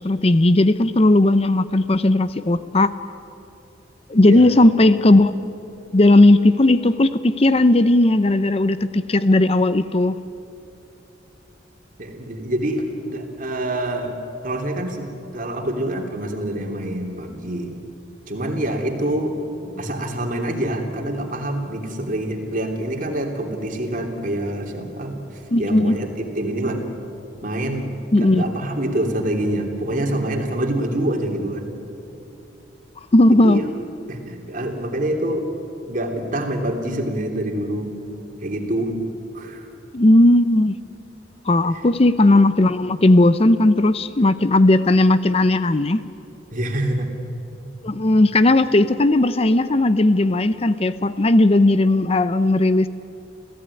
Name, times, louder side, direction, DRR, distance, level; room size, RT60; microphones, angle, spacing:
voice 1, 0.0-2.9 4.1-5.3 5.9-10.2 25.5-26.0 28.1-28.4 33.1-33.6 39.9-40.7 41.5-46.0 47.8-52.9, left 2 dB, 35° left, 13 dB, 0.6 m, -16 dB
voice 2, 12.0-14.1 14.4-17.8 18.3-19.4 19.8-26.1 26.3-26.8 27.4-27.9 28.2-31.7 33.3-33.6 34.1-35.5 35.9-38.0 38.4-38.9 39.3-39.7 46.5-47.1, right 1 dB, 45° right, 3 dB, 3.0 m, -26 dB
28.0 x 15.5 x 9.8 m, 2.8 s
head